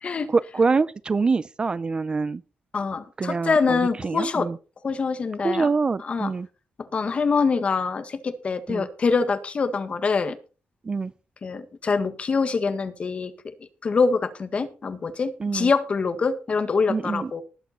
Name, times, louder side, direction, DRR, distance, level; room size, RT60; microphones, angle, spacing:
voice 1, 0.3-2.4 3.2-4.6 5.4-6.5 8.7-8.9 10.8-11.1 15.4-15.7 16.9-17.3, right 4 dB, 30° right, 0.5 m, -25 dB
voice 2, 2.7-4.5 4.8-5.7 6.0-6.3 6.8-10.4 11.4-13.3 13.8-17.4, left 4 dB, 35° left, 1.8 m, -24 dB
19.0 x 7.9 x 4.3 m
wide cardioid pair, 145°, 3 cm